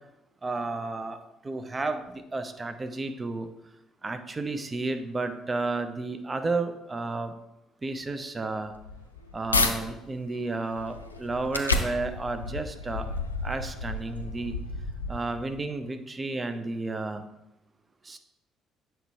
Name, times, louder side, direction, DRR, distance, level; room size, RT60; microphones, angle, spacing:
voice 1, 0.4-3.5 4.0-7.3 7.8-8.7 9.3-13.2 13.4-14.6 15.1-17.2 18.0-18.2, right 3 dB, 25° right, 8 dB, 0.6 m, -32 dB
sound 1, 8.7-9.7 10.3-15.5, left 3 dB, 85° left, 0.4 m, -31 dB
7.9 x 4.5 x 3.2 m, 0.89 s
figure-of-eight pair, 50°, 0 cm